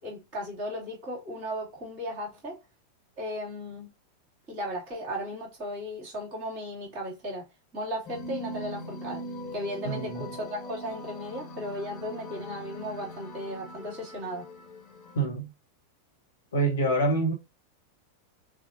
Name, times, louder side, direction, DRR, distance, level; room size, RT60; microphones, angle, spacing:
voice 1, 0.0-2.6 3.2-3.9 4.5-7.5 7.7-9.2 9.5-14.5, equal, 40° right, 2.8 m, -36 dB
sound 1, 8.1-15.3, equal, 25° left, 1.4 m, -41 dB
voice 2, 9.8-10.3 15.1-15.5 16.5-17.3, right 2 dB, 70° left, 1.4 m, -26 dB
6.1 x 2.4 x 2.8 m
figure-of-eight pair, 90°, 0 cm